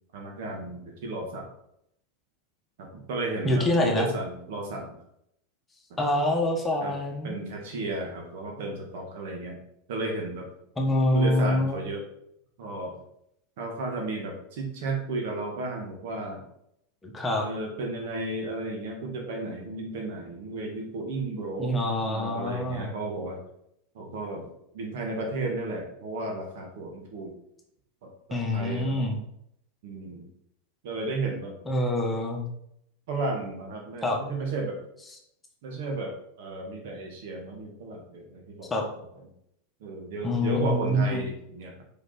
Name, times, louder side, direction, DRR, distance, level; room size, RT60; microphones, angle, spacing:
voice 1, 0.1-1.5 2.8-4.9 5.9-6.0 6.8-6.9 7.2-9.6 9.9-10.5 11.1-12.1 12.6-13.0 13.6-16.5 17.4-23.4 23.9-27.4 28.0-29.0 29.8-30.3 30.8-31.6 33.1-34.8 35.6-38.7 39.8-41.8, right 2 dB, 65° right, 1 dB, 1.8 m, -33 dB
voice 2, 3.4-4.1 6.0-7.4 10.8-11.8 17.0-17.4 21.6-23.0 28.3-29.2 31.6-32.5 34.0-34.2 38.7-38.8 40.2-41.2, left 1 dB, 15° left, 0 dB, 1.6 m, -26 dB
5.0 x 4.9 x 4.3 m, 0.75 s
hypercardioid pair, 95°, 0 cm